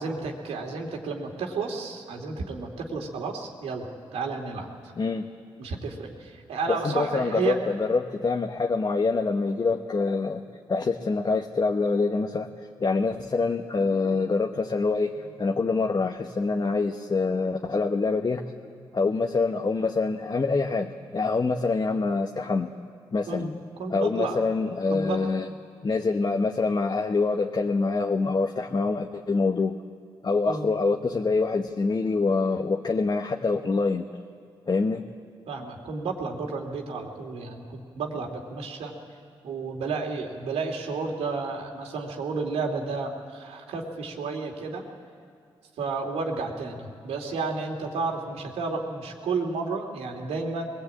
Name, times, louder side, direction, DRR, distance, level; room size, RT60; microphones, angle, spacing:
voice 1, 0.0-4.9 5.6-7.7 23.3-23.5 23.8-24.4 24.9-25.2 30.4-30.7 35.5-38.9 39.4-44.8 45.8-50.7, right 4 dB, 85° right, 2 dB, 2.7 m, -32 dB
voice 2, 5.0-5.3 6.8-10.4 10.7-18.4 18.9-22.7 23.1-23.5 23.9-25.5 25.8-29.8 30.2-34.0 34.7-35.0, left 4 dB, 40° left, 4 dB, 1.2 m, -25 dB
21.5 x 19.5 x 8.6 m, 2.3 s
supercardioid pair, 55°, 10 cm